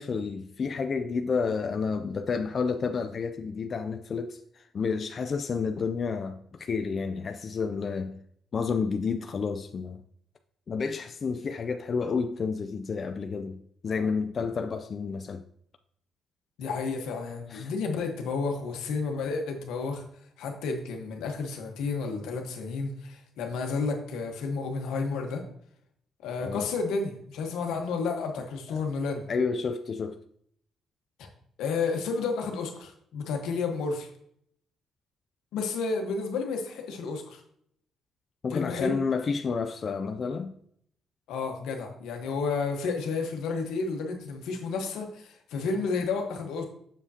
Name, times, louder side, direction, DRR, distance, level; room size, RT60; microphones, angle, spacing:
voice 1, 0.0-8.2 8.5-10.0 10.7-15.4 17.5-17.7 26.4-26.7 28.7-28.8 29.3-30.2 38.4-40.6, left 5 dB, 45° left, 0.4 m, -30 dB
voice 2, 16.6-20.0 20.4-25.4 26.2-29.2 31.2-31.3 31.6-34.1 35.5-37.4 38.5-39.0 41.3-46.6, left 4 dB, 90° left, 1.2 m, -31 dB
7.2 x 6.7 x 2.8 m
cardioid pair, 90°, 0 cm